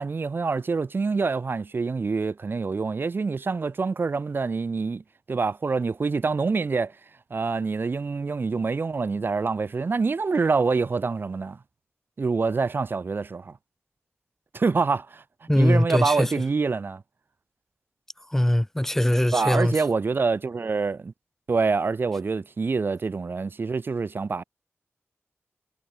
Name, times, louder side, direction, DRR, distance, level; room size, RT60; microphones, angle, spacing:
voice 1, 0.0-5.0 5.3-7.0 7.3-11.6 12.2-13.6 14.5-15.2 15.6-17.0 19.3-21.1 21.5-24.4, right 4 dB, 45° right, 3.5 m, -26 dB
voice 2, 15.5-16.3 18.3-19.7, left 1 dB, 10° left, 3.2 m, -21 dB
wide cardioid pair, 120°, 5 cm